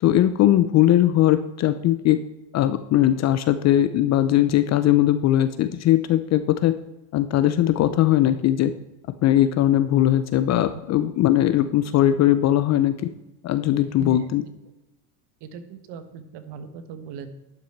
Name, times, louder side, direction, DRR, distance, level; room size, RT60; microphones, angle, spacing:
voice 1, 0.0-2.2 2.5-6.8 7.1-8.7 9.2-13.1 13.4-14.4, left 12 dB, 35° left, 12 dB, 0.4 m, -19 dB
voice 2, 14.0-14.3 15.4-17.3, right 6 dB, 55° right, 10 dB, 1.4 m, -38 dB
11.5 x 6.0 x 4.4 m, 0.99 s
supercardioid pair, 130°, 49 cm